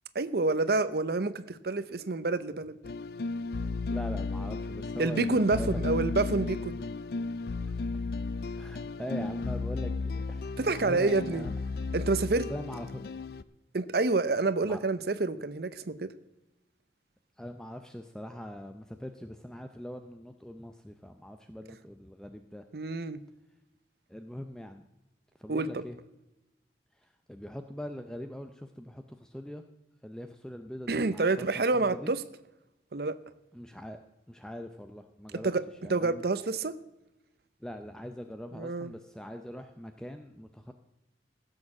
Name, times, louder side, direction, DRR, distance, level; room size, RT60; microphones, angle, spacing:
voice 1, 0.1-2.8 5.0-6.8 10.6-11.5 11.9-12.5 13.7-16.1 22.7-23.2 25.5-25.8 30.9-32.2 32.9-33.2 35.4-35.6 35.9-36.8 38.5-38.9, right 3 dB, 60° right, 14 dB, 0.7 m, -28 dB
sound 1, 2.8-13.4, left 3 dB, 60° left, 0.4 m, -34 dB
voice 2, 3.9-5.8 7.4-7.8 8.6-10.5 10.8-11.5 12.3-13.1 14.6-14.8 17.4-22.6 24.1-24.8 25.4-26.0 27.0-29.6 30.0-32.1 33.5-34.0 34.3-35.5 35.8-36.2 37.6-40.7, equal, 5° left, 7 dB, 0.5 m, -42 dB
15.5 x 6.6 x 7.2 m, 0.94 s
head